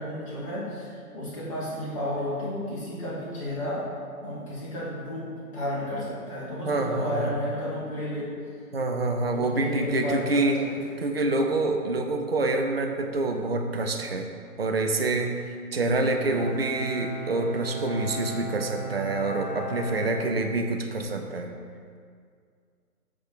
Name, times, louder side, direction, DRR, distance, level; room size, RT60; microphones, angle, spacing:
voice 1, 0.0-3.9 4.2-8.3 9.3-10.8, left 1 dB, 20° left, -8 dB, 1.6 m, -32 dB
voice 2, 6.7-7.3 8.7-10.6 11.0-14.3 14.6-21.5, right 2 dB, 40° right, 3 dB, 0.5 m, -27 dB
Bowed string instrument, 16.2-21.1, right 2 dB, 5° right, 0.8 m, -36 dB
8.2 x 3.5 x 6.0 m, 2.2 s
figure-of-eight pair, 155°, 47 cm